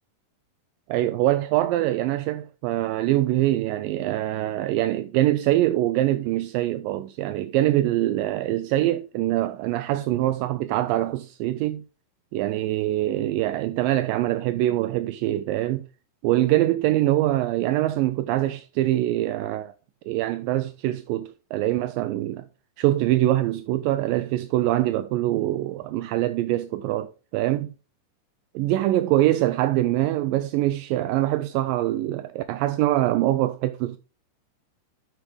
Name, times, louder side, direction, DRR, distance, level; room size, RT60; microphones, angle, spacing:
voice 1, 0.9-11.8 12.3-15.9 16.2-19.7 20.1-22.5 22.8-27.7 28.6-34.0, right 15 dB, 80° right, 2.2 m, -24 dB
11.5 x 6.1 x 3.3 m
omnidirectional pair, 4.1 m